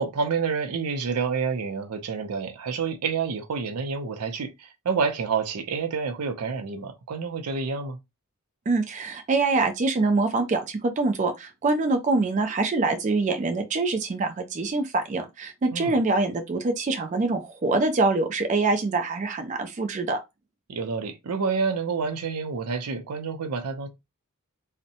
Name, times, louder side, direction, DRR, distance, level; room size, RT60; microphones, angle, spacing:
voice 1, 0.0-8.0 15.7-15.9 20.7-23.9, right 5 dB, 90° right, 0.5 m, -28 dB
voice 2, 8.7-20.2, right 3 dB, 35° right, 0.3 m, -25 dB
2.7 x 2.1 x 2.5 m
head